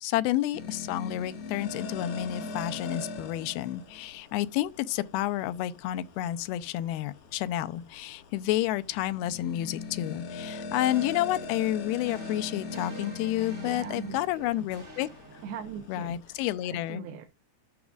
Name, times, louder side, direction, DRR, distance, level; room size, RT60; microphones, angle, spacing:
voice 1, 0.0-15.1 15.9-17.0, left 14 dB, 85° left, 2.5 m, -30 dB
sound 1, 0.5-16.7, left 4 dB, 70° left, 3.3 m, -41 dB
sound 2, 10.7-16.0, right 2 dB, 20° right, 2.1 m, -49 dB
voice 2, 13.6-14.7 15.4-16.2 16.6-17.3, right 7 dB, 80° right, 2.8 m, -41 dB
13.5 x 6.0 x 2.4 m
omnidirectional pair, 4.4 m